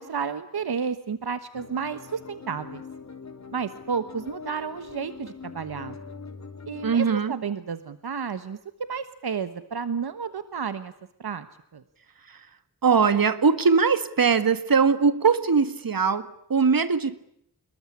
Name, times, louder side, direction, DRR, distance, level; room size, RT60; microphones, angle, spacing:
voice 1, 0.0-2.8 3.5-6.0 6.7-10.9 11.2-11.5 11.7-11.8, right 6 dB, 80° right, 1.4 m, -31 dB
sound 1, 1.5-7.0, left 5 dB, 45° left, 3.3 m, -42 dB
voice 2, 6.8-7.4 12.8-17.2, right 5 dB, 65° right, 1.9 m, -21 dB
26.5 x 22.5 x 9.8 m
wide cardioid pair, 110°, 38 cm